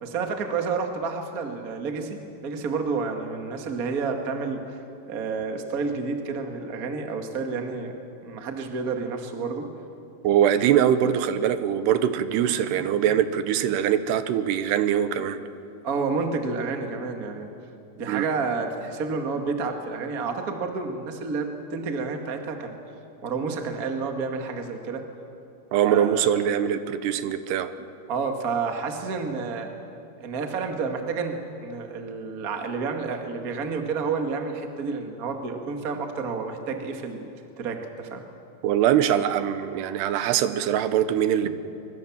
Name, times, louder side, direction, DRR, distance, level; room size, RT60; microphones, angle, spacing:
voice 1, 0.0-4.8 5.1-7.9 8.2-9.7 15.8-17.5 17.9-22.8 23.2-25.0 25.9-26.3 28.1-29.7 30.2-37.3 37.6-38.2 41.4-41.5, right 4 dB, 40° right, 4 dB, 1.2 m, -30 dB
voice 2, 10.2-15.4 18.1-18.3 25.7-27.7 38.6-41.5, right 10 dB, 85° right, 11 dB, 3.0 m, -22 dB
25.5 x 23.5 x 7.3 m, 2.6 s
omnidirectional pair, 4.7 m